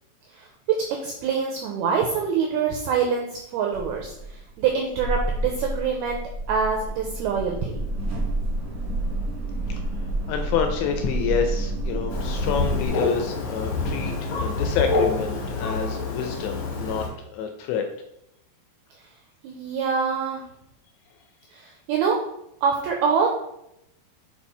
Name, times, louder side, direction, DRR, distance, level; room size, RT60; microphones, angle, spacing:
voice 1, 0.3-6.2 6.5-7.8 19.4-20.4 21.5-22.2 22.6-23.3, right 6 dB, 85° right, 1 dB, 2.2 m, -25 dB
sound 1, 3.7-12.9, right 1 dB, 65° right, 1.5 m, -29 dB
voice 2, 10.3-17.1 17.3-17.9, left 7 dB, 80° left, 5 dB, 2.6 m, -28 dB
Thunder, 12.1-17.1, left 3 dB, 60° left, 2.6 m, -27 dB
7.3 x 4.5 x 4.3 m, 0.81 s
omnidirectional pair, 5.4 m